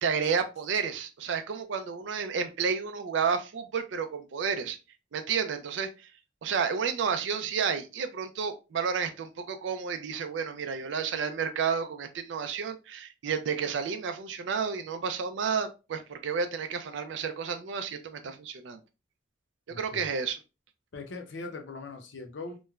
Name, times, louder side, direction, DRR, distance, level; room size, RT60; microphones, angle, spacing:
voice 1, 0.0-4.8 5.1-6.1 6.4-18.8 19.8-20.4, right 6 dB, 85° right, 8 dB, 0.4 m, -31 dB
voice 2, 19.7-20.1 20.9-22.6, left 3 dB, 85° left, 5 dB, 0.6 m, -40 dB
3.1 x 2.1 x 2.3 m, 0.28 s
head